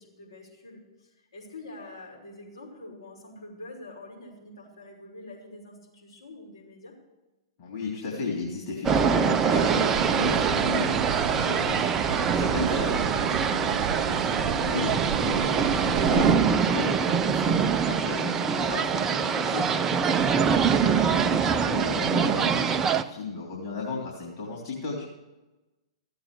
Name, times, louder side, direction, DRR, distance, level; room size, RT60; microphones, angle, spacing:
voice 1, 0.0-6.9, left 2 dB, 70° left, -4 dB, 5.8 m, -45 dB
voice 2, 7.6-11.8 12.3-20.0 20.2-22.7 22.9-25.1, left 4 dB, 45° left, -3 dB, 3.3 m, -35 dB
sound 1, 8.8-23.0, right 6 dB, 20° right, 0.6 m, -24 dB
sound 2, 9.5-16.3, right 7 dB, 40° right, 1.0 m, -31 dB
15.0 x 8.0 x 7.0 m, 1.1 s
figure-of-eight pair, 110°, 3 cm